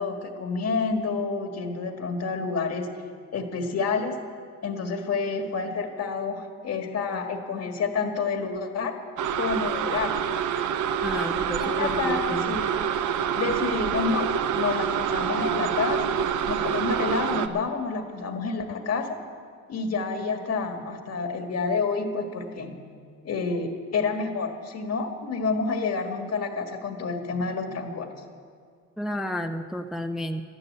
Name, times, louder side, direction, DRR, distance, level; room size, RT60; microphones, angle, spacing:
voice 1, 0.0-2.9 3.3-4.1 4.6-8.9 9.4-10.2 11.1-12.7 13.4-19.2 19.7-22.8 23.2-28.1, left 4 dB, 55° left, 5 dB, 1.7 m, -29 dB
sound 1, 9.2-17.5, right 8 dB, 80° right, 0.8 m, -27 dB
voice 2, 11.0-12.5 29.0-30.4, equal, ahead, 6 dB, 0.6 m, -31 dB
12.5 x 11.0 x 8.6 m, 2.1 s
cardioid pair, 90°, 30 cm